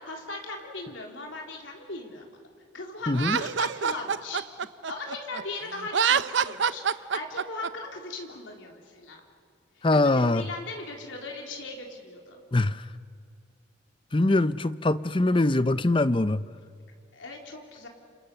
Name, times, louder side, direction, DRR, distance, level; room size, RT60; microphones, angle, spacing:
voice 1, 0.0-2.3 2.7-4.4 4.9-9.2 9.9-12.4 16.8-17.9, left 2 dB, 85° left, 3.7 m, -39 dB
voice 2, 3.1-3.4 9.8-10.4 12.5-12.8 14.1-16.5, left 2 dB, 25° left, 0.6 m, -23 dB
Laughter, 3.1-5.4 5.8-7.7, right 7 dB, 70° right, 0.6 m, -26 dB
29.0 x 27.5 x 6.8 m
head